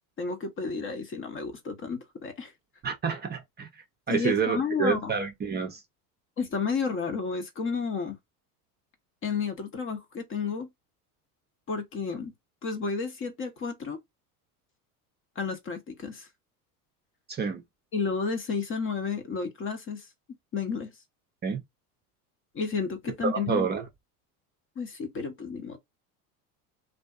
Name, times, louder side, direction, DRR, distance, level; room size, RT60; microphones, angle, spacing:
voice 1, 0.2-2.5 4.1-5.1 6.4-8.2 9.2-10.7 11.7-12.3 12.6-14.0 15.4-16.3 17.9-20.1 20.5-20.9 22.5-23.7 24.8-25.8, left 5 dB, 30° left, 0.7 m, -31 dB
voice 2, 2.8-3.7 4.1-5.8 17.3-17.6 21.4-21.6 23.2-23.9, right 6 dB, 25° right, 0.5 m, -28 dB
2.5 x 2.3 x 2.3 m
hypercardioid pair, 95°, 45 cm